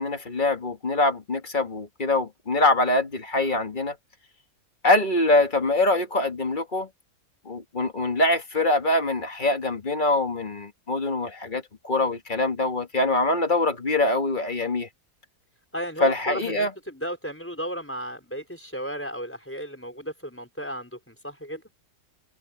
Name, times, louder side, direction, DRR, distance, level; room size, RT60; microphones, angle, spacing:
voice 1, 0.0-4.0 4.8-6.9 7.5-14.9 16.0-16.7, left 2 dB, 30° left, 1.9 m, -24 dB
voice 2, 15.7-21.6, equal, 5° left, 5.0 m, -34 dB
omnidirectional pair, 1.7 m